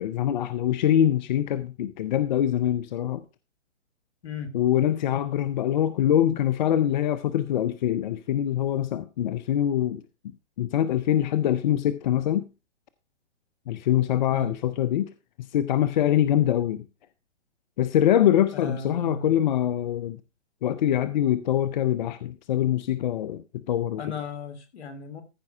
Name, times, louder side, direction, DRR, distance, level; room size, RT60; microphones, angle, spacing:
voice 1, 0.0-3.2 4.5-10.0 10.6-12.5 13.7-15.1 15.4-16.9 17.8-20.2 20.6-24.0, left 11 dB, 40° left, 0.6 m, -24 dB
voice 2, 18.5-19.3 24.0-25.2, left 4 dB, 65° left, 2.8 m, -36 dB
14.5 x 5.3 x 4.8 m
hypercardioid pair, 135°, 36 cm